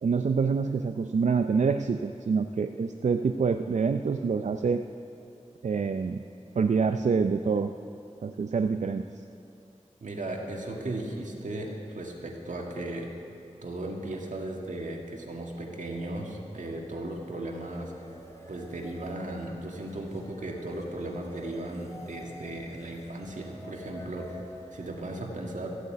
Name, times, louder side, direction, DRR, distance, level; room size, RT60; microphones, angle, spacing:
voice 1, 0.0-4.8 5.6-6.2 6.5-7.7 8.2-9.2, right 5 dB, 70° right, 8 dB, 0.4 m, -26 dB
voice 2, 10.0-13.1 13.6-17.9 18.5-24.4 24.7-25.7, right 1 dB, 90° right, 0 dB, 1.8 m, -36 dB
sound 1, 16.6-25.1, left 1 dB, 25° left, 2.5 m, -48 dB
14.5 x 8.2 x 8.4 m, 2.7 s
wide cardioid pair, 55°, 13 cm